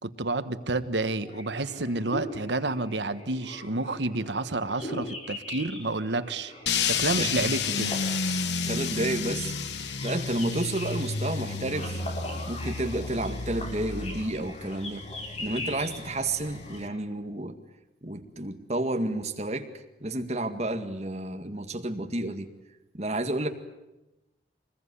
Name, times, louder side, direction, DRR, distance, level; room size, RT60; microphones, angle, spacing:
voice 1, 0.0-6.5 6.8-8.0, right 2 dB, 80° right, 11 dB, 1.4 m, -30 dB
sound 1, 1.1-17.0, left 1 dB, 35° left, 5.0 m, -41 dB
sound 2, 6.7-16.9, left 5 dB, 80° left, 1.2 m, -32 dB
voice 2, 8.7-9.5 9.8-12.0 12.5-15.0 15.4-17.6 18.0-19.7 20.0-22.5 22.9-23.5, right 2 dB, 35° right, 6 dB, 2.0 m, -31 dB
24.5 x 21.0 x 9.9 m, 0.98 s
head